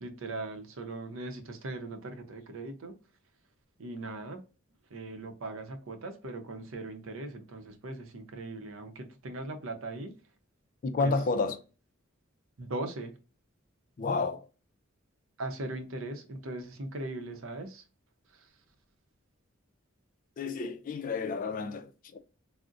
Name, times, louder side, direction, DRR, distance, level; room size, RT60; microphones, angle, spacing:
voice 1, 0.0-2.9 3.8-4.4 4.9-10.1 11.0-11.1 12.6-13.2 15.4-17.8 18.3-18.5, right 2 dB, 70° right, 0.6 m, -39 dB
voice 2, 10.8-11.6 14.0-14.4 20.4-22.2, left 4 dB, 40° left, 0.4 m, -30 dB
3.8 x 2.0 x 2.4 m
head